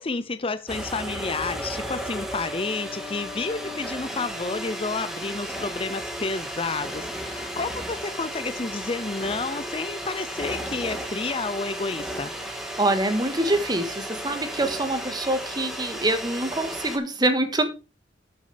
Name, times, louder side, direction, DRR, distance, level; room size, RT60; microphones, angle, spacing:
voice 1, 0.0-12.3, left 3 dB, 30° left, 12 dB, 0.7 m, -30 dB
sound 1, 0.7-17.0, equal, ahead, 2.3 m, -34 dB
voice 2, 12.8-17.7, right 1 dB, 25° right, 7 dB, 1.8 m, -25 dB
8.8 x 8.1 x 5.1 m, 0.29 s
head